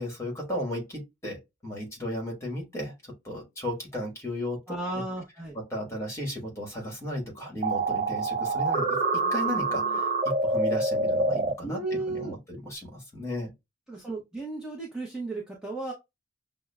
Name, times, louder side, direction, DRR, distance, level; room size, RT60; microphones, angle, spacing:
voice 1, 0.0-5.0 5.5-8.8 9.3-13.5, left 1 dB, 15° left, 1.4 m, -35 dB
voice 2, 4.7-5.6 9.2-10.0 11.6-12.4 13.9-15.9, right 2 dB, 5° right, 0.7 m, -35 dB
sound 1, 7.6-11.5, right 3 dB, 40° right, 0.4 m, -26 dB
6.0 x 2.0 x 2.2 m
head